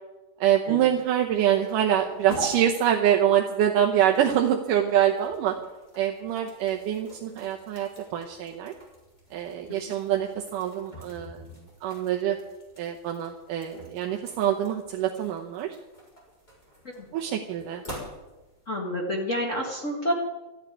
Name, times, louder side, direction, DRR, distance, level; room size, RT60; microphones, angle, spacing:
voice 1, 0.4-5.5 5.9-8.7 9.3-11.4 11.8-12.4 12.8-15.8 17.1-17.8, right 10 dB, 70° right, 1 dB, 2.2 m, -25 dB
sound 1, 0.7-18.7, right 1 dB, 10° left, 3.9 m, -45 dB
voice 2, 18.7-20.1, equal, 85° left, -1 dB, 0.6 m, -28 dB
14.0 x 8.4 x 10.0 m, 1.1 s
omnidirectional pair, 4.5 m